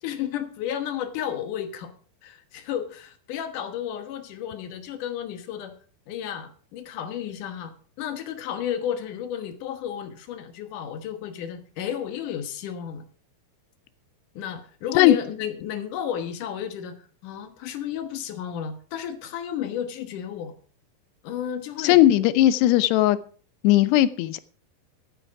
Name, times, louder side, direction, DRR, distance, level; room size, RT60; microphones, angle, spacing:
voice 1, 0.0-1.9 2.2-5.7 6.1-13.1 14.4-20.5 21.2-22.0, left 9 dB, 65° left, 8 dB, 2.4 m, -32 dB
voice 2, 21.8-23.2 23.6-24.4, left 14 dB, 85° left, 14 dB, 2.8 m, -18 dB
12.5 x 10.0 x 4.8 m, 0.42 s
omnidirectional pair, 4.8 m